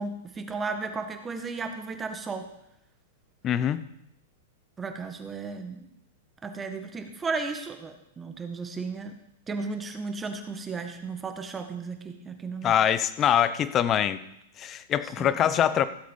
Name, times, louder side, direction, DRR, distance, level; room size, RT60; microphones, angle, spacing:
voice 1, 0.0-2.5 4.8-5.9 6.4-9.2 9.5-12.7 15.2-15.5, right 4 dB, 20° right, 6 dB, 1.7 m, -34 dB
voice 2, 3.4-3.8 12.6-14.2 14.6-15.9, left 10 dB, 30° left, 14 dB, 0.8 m, -24 dB
16.0 x 7.6 x 5.6 m, 0.80 s
hypercardioid pair, 115°, 0 cm